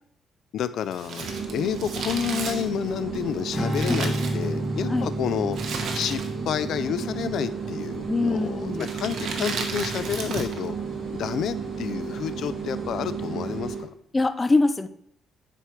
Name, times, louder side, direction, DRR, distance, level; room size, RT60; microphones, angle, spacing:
voice 1, 0.5-5.6 5.9-10.8 11.1-13.9, left 9 dB, 70° left, 13 dB, 0.4 m, -30 dB
Crumpling crinkling, 0.9-4.9 5.5-6.6 6.8-6.9 7.7-8.1 8.7-10.7 10.9-11.0, right 4 dB, 65° right, 1.2 m, -34 dB
sound 1, 1.2-13.8, right 5 dB, 50° right, 2.8 m, -33 dB
Strum, 3.5-9.9, equal, ahead, 1.6 m, -33 dB
voice 2, 4.8-5.1 8.1-8.9 14.1-14.9, left 3 dB, 25° left, 11 dB, 0.5 m, -23 dB
9.8 x 4.6 x 3.2 m, 0.71 s
cardioid pair, 90°, 0 cm